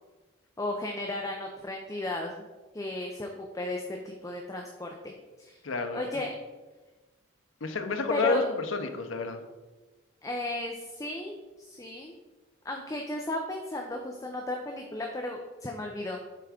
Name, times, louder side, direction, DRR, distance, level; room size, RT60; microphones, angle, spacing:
voice 1, 0.6-2.3 2.7-3.3 3.5-5.6 5.9-6.3 8.1-8.5 10.2-12.1 12.6-16.2, left 2 dB, 15° left, 1 dB, 0.5 m, -34 dB
voice 2, 5.6-6.2 7.6-9.4, left 3 dB, 75° left, 6 dB, 0.8 m, -30 dB
7.7 x 3.6 x 5.0 m, 1.2 s
head